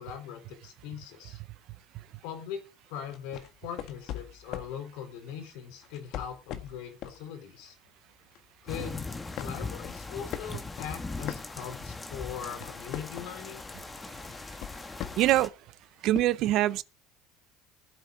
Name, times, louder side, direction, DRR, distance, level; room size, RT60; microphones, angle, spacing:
voice 1, 0.0-1.4 2.2-2.6 2.9-7.8 8.6-9.1 9.4-13.6, left 8 dB, 80° left, 3.9 m, -40 dB
sound 1, 3.1-4.8 5.8-7.2 7.7-7.9 8.3-9.0 9.4-12.0 12.3-13.5 14.3-15.4 16.1-16.2, left 11 dB, 60° left, 1.5 m, -40 dB
sound 2, 8.7-15.5, left 3 dB, 15° left, 1.5 m, -40 dB
voice 2, 15.2-15.5 16.0-16.8, right 15 dB, 60° right, 0.6 m, -24 dB
19.5 x 8.2 x 3.8 m
cardioid pair, 130°, 0 cm